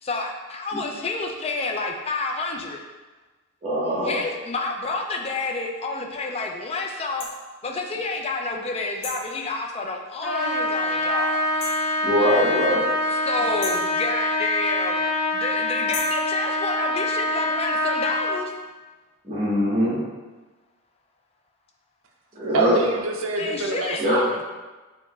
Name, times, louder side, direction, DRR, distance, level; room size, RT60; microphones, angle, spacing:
voice 1, 0.0-2.8 4.0-7.3 7.6-11.5 13.2-15.1 15.3-18.5 23.4-24.0, left 3 dB, 25° left, 2 dB, 0.4 m, -29 dB
voice 2, 3.6-4.2 12.0-12.9 19.2-20.0 22.3-22.8 24.0-24.2, equal, 25° right, -8 dB, 1.4 m, -22 dB
sound 1, 7.2-7.3 9.0-9.3 11.6-11.9 13.6-13.9 15.9-16.2, left 3 dB, 85° left, 0.8 m, -34 dB
Trumpet, 10.2-18.4, left 1 dB, 5° right, 0.9 m, -25 dB
voice 3, 22.5-24.4, right 3 dB, 65° right, 1 dB, 0.5 m, -26 dB
6.8 x 2.9 x 2.4 m, 1.2 s
head